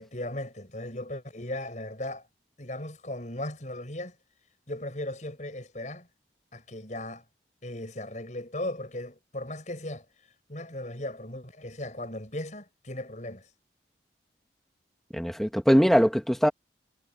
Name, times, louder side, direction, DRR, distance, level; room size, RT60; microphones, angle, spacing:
voice 1, 0.0-2.3 2.6-4.2 4.7-6.1 6.5-7.2 7.6-10.0 10.5-13.5, left 1 dB, 40° left, 6.3 m, -37 dB
voice 2, 15.1-16.5, equal, ahead, 1.9 m, -21 dB
head